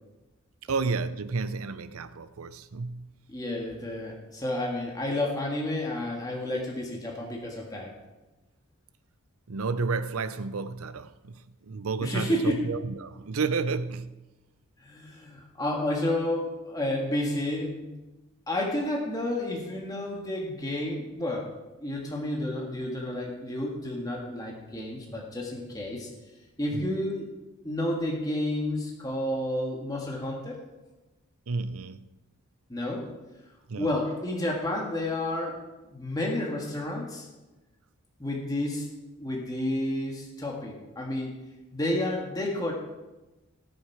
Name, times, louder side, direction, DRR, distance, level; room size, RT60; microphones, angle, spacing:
voice 1, 0.7-3.1 9.5-14.3 26.7-27.0 31.5-32.1 33.7-33.9, right 4 dB, 80° right, 0.6 m, -31 dB
voice 2, 3.3-7.9 12.0-12.6 14.8-17.8 18.5-21.5 21.8-26.1 26.6-27.3 27.6-30.6 32.7-33.1 33.8-35.6 35.9-37.3 38.2-38.9 39.2-41.3 41.7-42.7, left 1 dB, 15° left, 1.8 m, -30 dB
19.0 x 6.6 x 4.7 m
head